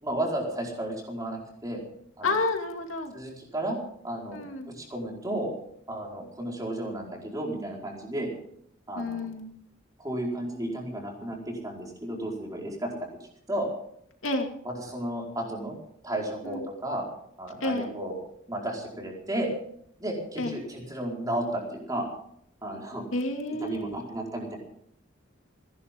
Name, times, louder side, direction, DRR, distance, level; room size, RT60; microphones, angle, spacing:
voice 1, 0.0-1.8 2.2-2.3 3.1-3.8 4.0-5.5 5.9-8.3 8.9-9.3 10.0-13.0 13.5-13.7 14.6-15.7 16.0-17.1 17.4-18.1 18.5-19.5 20.0-22.1 22.6-23.1 23.6-24.6, right 1 dB, 20° right, -1 dB, 4.6 m, -33 dB
voice 2, 2.2-3.1 4.3-4.7 9.0-9.5 14.2-14.5 16.4-16.7 17.6-17.9 20.4-20.6 23.1-24.0, left 2 dB, 90° left, 4 dB, 2.4 m, -30 dB
29.0 x 11.0 x 3.7 m, 0.68 s
head